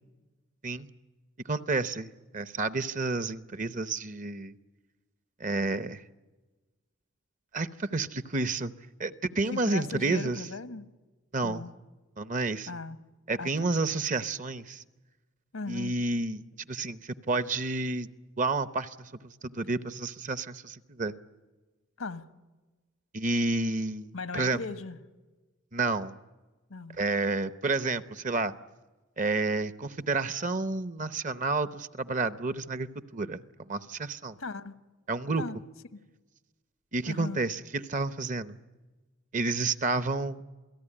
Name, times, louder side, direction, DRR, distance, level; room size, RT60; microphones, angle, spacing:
voice 1, 1.5-2.1 2.3-4.5 5.4-6.0 7.5-8.7 9.0-10.4 11.3-11.7 12.2-12.7 13.3-14.8 15.7-16.4 16.7-18.1 18.4-21.1 23.1-24.6 25.7-26.1 27.0-28.5 29.2-34.4 35.1-35.4 36.9-38.6 39.3-40.4, right 3 dB, 35° right, 13 dB, 0.8 m, -30 dB
voice 2, 9.5-10.9 11.4-11.7 12.7-13.0 13.4-13.5 15.5-15.9 22.0-22.2 24.1-25.0 26.7-27.0 34.4-34.7 35.4-35.6 35.9-36.0 37.1-37.4, left 3 dB, 90° left, 11 dB, 1.4 m, -37 dB
28.0 x 18.0 x 10.0 m, 1.2 s
head